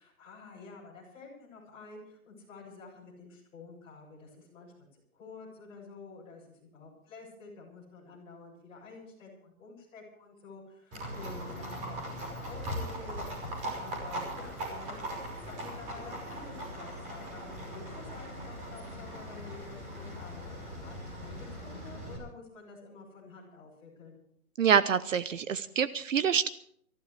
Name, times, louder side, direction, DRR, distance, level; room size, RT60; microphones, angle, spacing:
voice 1, 0.0-15.0 15.4-24.2, left 4 dB, 10° left, -6 dB, 7.3 m, -50 dB
Livestock farm animals working animals, 10.9-22.2, equal, 15° right, 5.8 m, -40 dB
voice 2, 24.6-26.5, right 7 dB, 60° right, 14 dB, 0.8 m, -26 dB
25.5 x 15.5 x 3.4 m, 0.65 s
hypercardioid pair, 165°, 44 cm